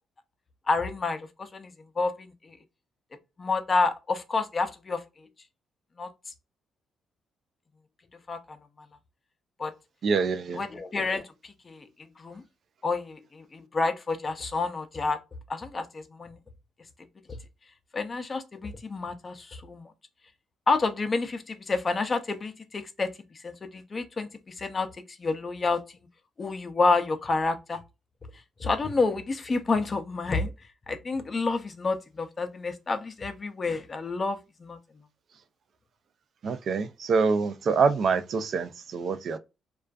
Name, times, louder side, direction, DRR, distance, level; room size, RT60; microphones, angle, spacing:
voice 1, 0.7-2.6 3.4-5.0 6.0-6.1 8.3-8.6 9.6-9.7 10.5-11.9 12.2-12.4 12.8-15.2 15.5-16.3 17.9-19.9 20.7-25.8 26.4-27.8 28.6-30.5 30.9-34.8, left 3 dB, 35° left, 0.5 m, -29 dB
voice 2, 10.0-10.6 36.4-39.4, right 5 dB, 55° right, 0.4 m, -25 dB
2.5 x 2.3 x 2.3 m
cardioid pair, 90°, 0 cm